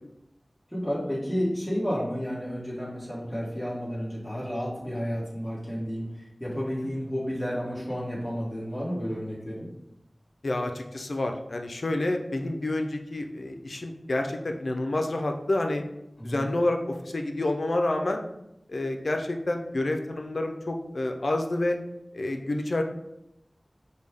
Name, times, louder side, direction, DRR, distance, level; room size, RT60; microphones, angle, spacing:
voice 1, 0.7-9.7 16.2-16.4, equal, ahead, -8 dB, 1.4 m, -31 dB
voice 2, 10.4-15.8 16.2-18.2 18.7-21.8 22.1-22.8, left 2 dB, 80° left, 4 dB, 0.4 m, -28 dB
5.2 x 2.2 x 3.4 m, 0.84 s
wide cardioid pair, 45°, 0 cm